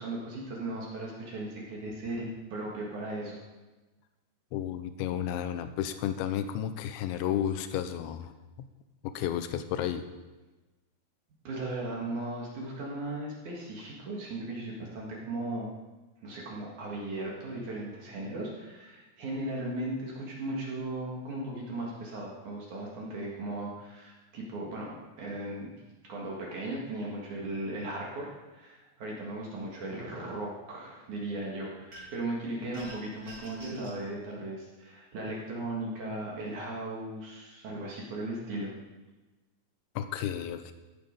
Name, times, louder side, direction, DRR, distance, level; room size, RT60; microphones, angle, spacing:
voice 1, 0.0-3.4 11.4-15.7 16.2-25.7 26.1-38.7, right 2 dB, 55° right, -3 dB, 2.6 m, -37 dB
voice 2, 4.5-8.3 8.6-8.7 9.0-10.0 40.0-40.7, left 10 dB, 80° left, 10 dB, 2.9 m, -32 dB
Ice In A Glass, 31.9-32.3 32.7-34.0, right 1 dB, 25° right, 3.3 m, -48 dB
14.5 x 7.4 x 5.3 m, 1.2 s
omnidirectional pair, 5.4 m